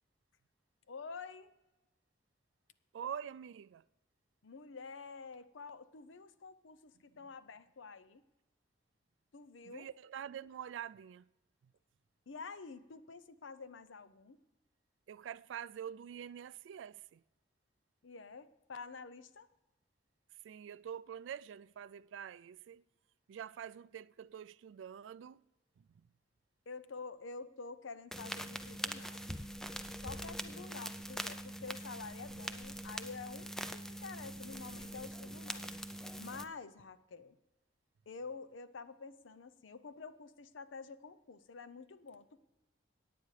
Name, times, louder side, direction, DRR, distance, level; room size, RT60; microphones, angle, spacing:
voice 1, 0.9-1.5 4.4-8.2 9.3-9.9 12.3-14.4 18.0-19.5 26.7-29.3 30.0-35.7 36.2-37.4 38.1-42.4, left 4 dB, 85° left, 0.6 m, -49 dB
voice 2, 2.9-3.8 9.6-11.3 15.1-17.2 20.4-22.8 23.3-25.4 25.8-25.9, right 8 dB, 70° right, 0.3 m, -46 dB
sound 1, 28.1-36.4, equal, 5° left, 0.5 m, -43 dB
17.0 x 9.3 x 3.3 m
head